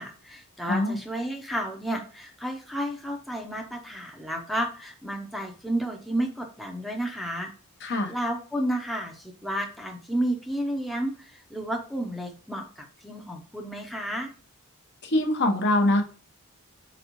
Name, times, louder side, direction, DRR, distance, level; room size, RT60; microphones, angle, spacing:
voice 1, 0.0-7.5 7.8-14.3, right 1 dB, ahead, 1 dB, 0.5 m, -32 dB
voice 2, 7.8-8.1 15.0-16.0, left 1 dB, 50° left, 5 dB, 0.8 m, -23 dB
4.4 x 4.1 x 2.9 m, 0.41 s
head